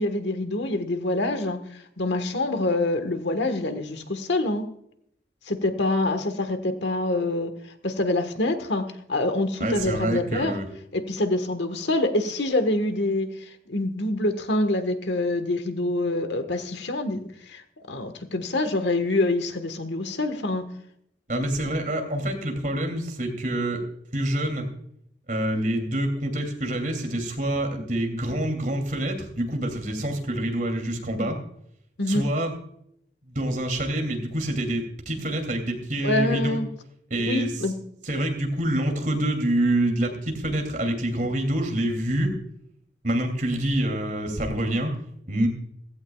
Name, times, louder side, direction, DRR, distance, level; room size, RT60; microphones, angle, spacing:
voice 1, 0.0-1.6 2.0-4.7 5.5-7.5 7.8-10.6 10.9-17.6 17.9-20.6 32.0-32.3 36.0-36.7 37.3-37.7, left 2 dB, 70° left, 8 dB, 1.4 m, -26 dB
voice 2, 9.6-10.7 21.3-23.8 24.1-24.7 25.3-31.4 32.1-32.5 33.2-36.6 37.1-37.5 38.0-42.3 43.0-44.9 45.3-45.5, right 1 dB, 45° right, 4 dB, 2.8 m, -26 dB
16.0 x 15.5 x 2.3 m, 0.71 s
head